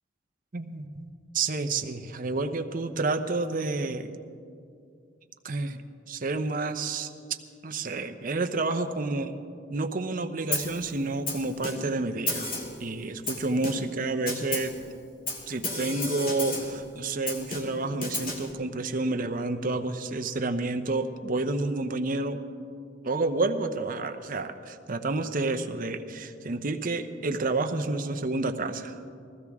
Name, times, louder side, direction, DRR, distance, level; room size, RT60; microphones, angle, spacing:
voice 1, 0.5-1.1 1.3-4.1 5.4-5.8 6.1-7.1 7.6-9.3 9.7-12.5 12.8-14.7 15.5-22.4 23.0-29.0, right 3 dB, 45° right, 7 dB, 0.8 m, -29 dB
Snare drum, 10.5-10.8 11.3-12.0 12.3-12.8 13.3-14.0 14.3-14.8 15.3-16.8 17.3-18.5, left 2 dB, 50° left, 2.3 m, -33 dB
20.0 x 15.0 x 3.6 m, 2.4 s
head